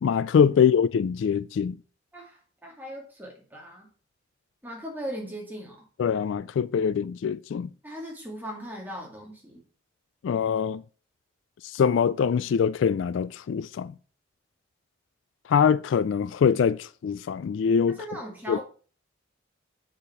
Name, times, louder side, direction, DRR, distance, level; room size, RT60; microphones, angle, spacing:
voice 1, 0.0-1.8 6.0-7.7 10.2-10.8 11.7-13.9 15.5-18.0 18.5-18.6, left 7 dB, 70° left, 0.3 m, -23 dB
voice 2, 2.1-3.9 4.6-5.9 7.8-9.6 17.9-18.6, equal, 10° right, 2.2 m, -38 dB
7.0 x 5.0 x 5.8 m
head